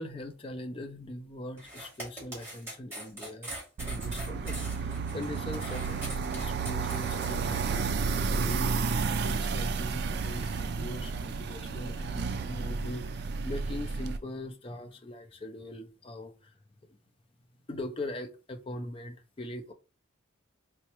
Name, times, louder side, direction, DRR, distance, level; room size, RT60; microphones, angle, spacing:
voice 1, 0.0-3.6 3.9-16.6 17.7-19.7, left 1 dB, 30° left, 0.5 m, -41 dB
sound 1, 1.6-7.3, right 1 dB, 10° right, 1.8 m, -42 dB
sound 2, 3.8-14.2, right 4 dB, 55° right, 0.3 m, -32 dB
4.0 x 2.2 x 3.0 m
head